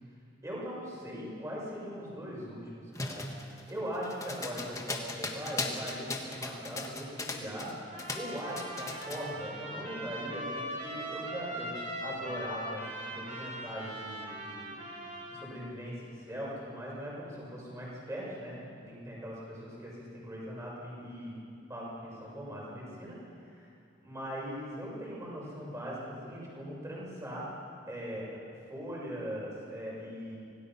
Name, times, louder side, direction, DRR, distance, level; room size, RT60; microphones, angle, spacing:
voice 1, 0.4-3.3 3.7-7.7 8.1-14.8 15.3-21.4 21.7-23.1 23.4-23.6 24.0-27.5 27.9-28.3 28.7-30.3, equal, 15° right, -5 dB, 6.2 m, -40 dB
sound 1, 2.9-7.7 8.0-9.3, left 3 dB, 15° left, 1.5 m, -37 dB
Trumpet, 7.9-15.5, right 1 dB, 35° right, 3.0 m, -40 dB
26.0 x 18.0 x 5.8 m, 2.5 s
head